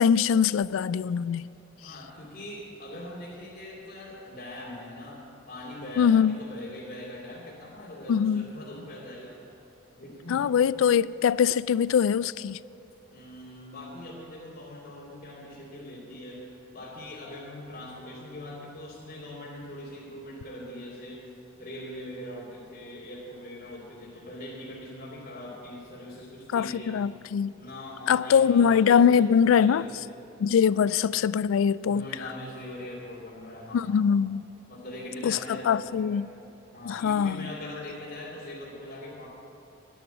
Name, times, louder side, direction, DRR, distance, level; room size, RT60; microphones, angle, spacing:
voice 1, 0.0-1.5 6.0-6.4 8.1-8.5 10.3-12.6 26.5-27.5 28.1-29.8 30.4-32.1 33.7-34.4 35.2-35.4 35.7-36.3 36.9-37.4, left 7 dB, 70° left, 0.3 m, -22 dB
voice 2, 1.8-9.4 9.9-10.5 13.1-16.5 16.7-21.3 21.6-27.0 27.5-30.2 30.7-30.9 31.8-34.0 34.7-36.3 36.7-39.3, left 1 dB, 45° left, 2.5 m, -41 dB
10.0 x 10.0 x 9.2 m
head